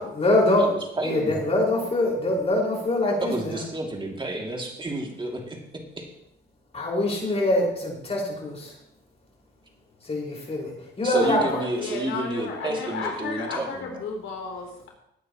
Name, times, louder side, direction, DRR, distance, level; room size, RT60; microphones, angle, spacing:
voice 1, 0.0-0.7 1.0-3.6 6.7-8.7 10.1-10.7 11.0-11.4, left 1 dB, 30° left, -2 dB, 5.2 m, -23 dB
voice 2, 0.6-1.4 3.2-5.6 6.0-6.1 11.0-13.8, right 1 dB, 25° right, 1 dB, 2.7 m, -31 dB
voice 3, 11.2-14.9, left 4 dB, 80° left, 0 dB, 3.6 m, -33 dB
17.5 x 9.3 x 3.1 m, 0.78 s
cardioid pair, 90°, 20 cm